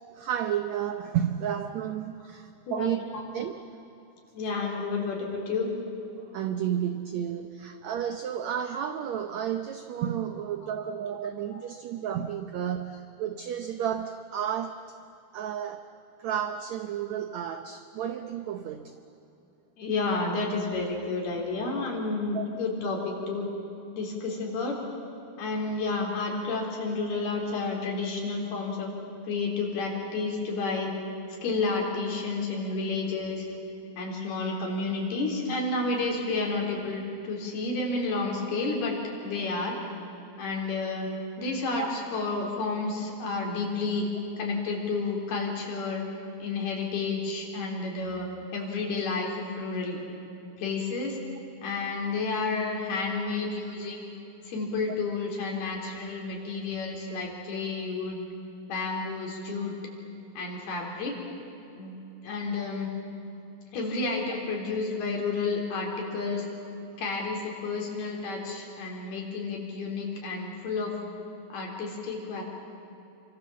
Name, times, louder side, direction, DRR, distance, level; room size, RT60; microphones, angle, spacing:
voice 1, 0.1-3.0 3.3-3.5 6.1-15.0 15.3-15.9 16.2-19.0 22.3-22.4 25.2-25.3 41.8-41.9 66.8-66.9, right 9 dB, 85° right, 8 dB, 1.5 m, -32 dB
voice 2, 4.3-5.7 11.5-11.6 19.8-23.5 24.0-24.8 25.4-28.9 29.2-30.9 31.4-33.5 34.0-39.0 39.2-39.8 40.4-41.1 41.4-44.1 44.4-46.0 46.4-48.3 48.5-49.3 49.6-50.0 50.6-51.2 51.6-54.1 54.4-58.2 58.7-59.7 60.4-61.2 61.8-62.0 62.2-62.9 63.7-66.5 67.0-70.9 71.5-72.4, left 3 dB, 90° left, 0 dB, 5.9 m, -30 dB
29.0 x 24.5 x 7.5 m, 2.9 s
omnidirectional pair, 4.4 m